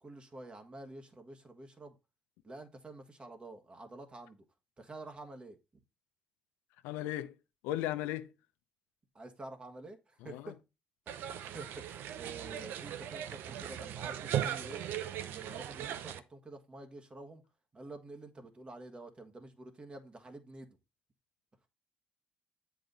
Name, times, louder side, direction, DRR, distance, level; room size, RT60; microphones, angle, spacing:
voice 1, 0.0-1.9 2.4-4.4 4.8-5.6 9.2-10.6 11.1-14.8 15.2-17.4 17.7-20.8, right 2 dB, 30° right, 1.6 m, -49 dB
voice 2, 6.8-7.3 7.6-8.3 10.2-10.5, left 13 dB, 90° left, 0.6 m, -36 dB
sound 1, 11.1-16.2, right 10 dB, 75° right, 0.6 m, -38 dB
7.8 x 4.8 x 4.0 m
supercardioid pair, 75°, 4 cm